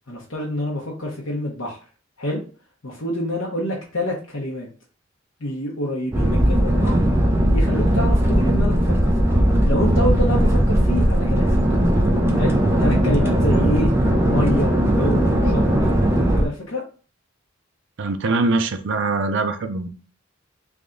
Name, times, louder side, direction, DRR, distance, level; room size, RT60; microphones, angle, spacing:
voice 1, 0.1-1.8 2.2-2.4 2.8-4.7 5.4-7.0 7.5-11.4 11.7-11.9 12.4-13.9 14.3-15.6 16.1-16.8, left 1 dB, 75° left, -4 dB, 0.9 m, -27 dB
sound 1, 6.1-16.5, equal, 10° right, 0.6 m, -18 dB
voice 2, 18.0-19.9, right 3 dB, 65° right, 8 dB, 0.5 m, -23 dB
3.4 x 2.3 x 3.8 m, 0.38 s
head